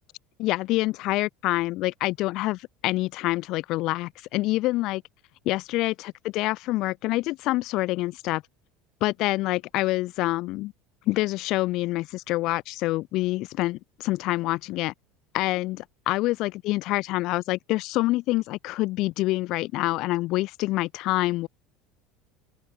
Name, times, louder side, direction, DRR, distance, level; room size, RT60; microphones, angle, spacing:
voice 1, 0.4-5.0 5.5-8.4 9.0-10.7 11.1-14.9 15.3-21.5, left 19 dB, 55° left, 0.4 m, -26 dB
open air
hypercardioid pair, 70°, 0 cm